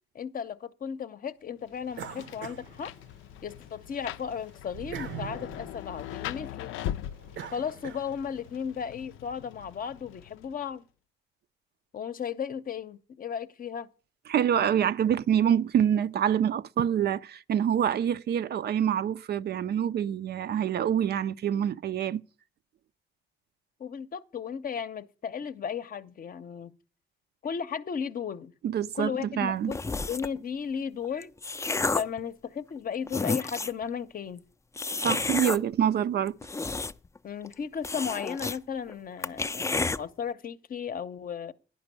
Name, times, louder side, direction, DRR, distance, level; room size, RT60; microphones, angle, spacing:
voice 1, 0.1-2.9 3.4-6.7 7.5-10.8 11.9-13.9 23.8-26.7 27.4-28.5 28.9-29.8 30.1-31.3 31.9-34.4 37.2-41.5, left 7 dB, 45° left, 0.7 m, -35 dB
Rain, 1.7-10.7, left 12 dB, 85° left, 0.4 m, -41 dB
sound 1, 1.9-3.5 3.9-8.5, right 8 dB, 70° right, 0.8 m, -43 dB
voice 2, 14.3-22.2 28.6-29.7 35.0-36.4, right 9 dB, 55° right, 0.5 m, -26 dB
sound 2, 29.7-30.4 31.0-32.2 32.8-32.9 33.1-33.8 34.8-35.6 36.3-37.2 37.4-37.5 37.8-38.6 38.9-39.0 39.2-40.0, left 3 dB, 15° left, 0.4 m, -30 dB
10.5 x 5.2 x 8.3 m
cardioid pair, 90°, 20 cm